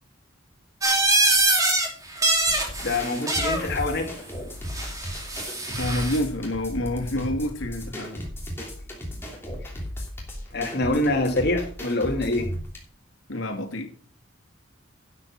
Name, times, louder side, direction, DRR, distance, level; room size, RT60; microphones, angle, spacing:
sound 1, 0.8-1.9 2.1-3.7 4.7-6.2, right 2 dB, 15° right, 2.7 m, -23 dB
sound 2, 2.5-12.8, equal, 10° left, 3.1 m, -35 dB
voice 1, 2.8-4.1 10.5-12.5, left 2 dB, 55° left, 2.4 m, -25 dB
voice 2, 5.8-8.2 13.3-13.9, left 1 dB, 80° left, 2.2 m, -28 dB
12.0 x 6.5 x 5.8 m
head